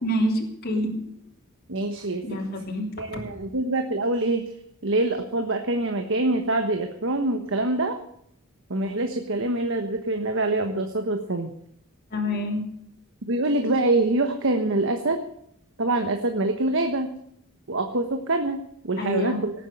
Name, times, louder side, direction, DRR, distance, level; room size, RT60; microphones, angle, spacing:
voice 1, 0.0-1.1 2.2-3.2 12.1-12.6 19.0-19.4, equal, 45° left, -1 dB, 3.1 m, -27 dB
voice 2, 1.7-2.2 3.0-4.5 4.8-8.0 8.7-11.5 13.3-15.2 15.8-17.1 17.7-19.5, right 2 dB, 60° right, 5 dB, 1.4 m, -25 dB
18.5 x 9.1 x 6.7 m, 0.70 s
head